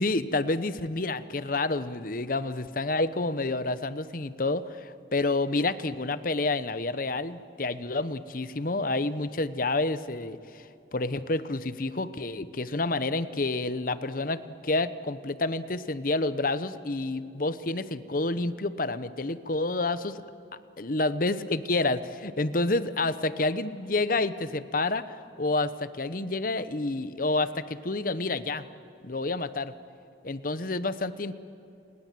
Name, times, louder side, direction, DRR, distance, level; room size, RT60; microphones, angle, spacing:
voice 1, 0.0-20.2 20.8-28.7 29.0-29.7 30.2-31.3, left 2 dB, 45° left, 13 dB, 0.9 m, -29 dB
30.0 x 21.0 x 7.7 m, 2.8 s
head